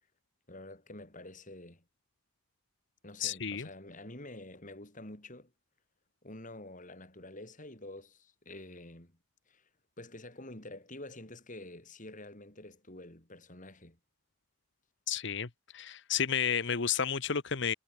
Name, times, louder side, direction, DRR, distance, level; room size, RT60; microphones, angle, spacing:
voice 1, 0.5-1.8 3.0-5.5 6.2-9.2 9.5-9.6 10.0-14.0, left 1 dB, 40° left, 5.4 m, -48 dB
voice 2, 3.2-3.7 15.1-15.5 15.7-17.7, left 7 dB, 60° left, 1.1 m, -31 dB
head